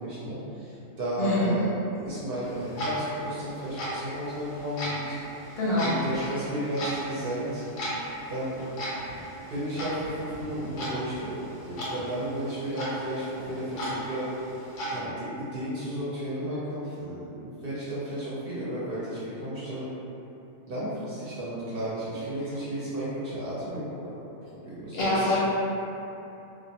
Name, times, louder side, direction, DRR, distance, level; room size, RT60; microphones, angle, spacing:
voice 1, 0.0-7.6 8.3-8.6 9.5-14.3 14.9-19.9 20.7-24.2 24.7-25.4, equal, 60° right, -10 dB, 0.7 m, -33 dB
voice 2, 1.2-1.5 5.6-5.9 24.9-25.4, left 1 dB, 65° left, -9 dB, 0.7 m, -25 dB
Clock, 2.4-15.0, equal, 90° left, 1.0 m, -37 dB
2.4 x 2.1 x 2.7 m, 2.9 s
omnidirectional pair, 1.3 m